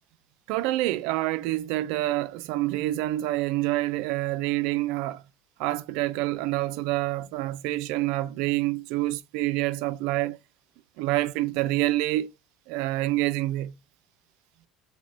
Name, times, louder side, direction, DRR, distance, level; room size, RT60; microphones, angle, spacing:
voice 1, 0.5-5.2 5.6-10.4 11.0-12.3 12.7-13.7, right 17 dB, 75° right, 0.3 m, -27 dB
3.4 x 3.2 x 2.6 m
cardioid pair, 125°, 0 cm